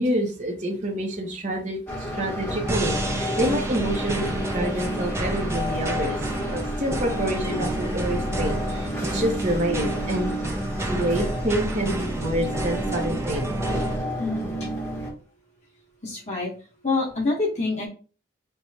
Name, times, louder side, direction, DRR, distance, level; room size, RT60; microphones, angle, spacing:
voice 1, 0.0-6.2 6.5-10.6 10.9-13.6, right 1 dB, 35° right, -1 dB, 0.8 m, -27 dB
sound 1, 1.9-15.1, equal, 10° left, 1.1 m, -31 dB
sound 2, 2.7-14.0, right 1 dB, 15° right, 0.5 m, -30 dB
voice 2, 14.2-14.7 16.0-16.5 16.8-17.9, left 3 dB, 35° left, -3 dB, 1.3 m, -26 dB
4.6 x 2.3 x 4.1 m, 0.37 s
head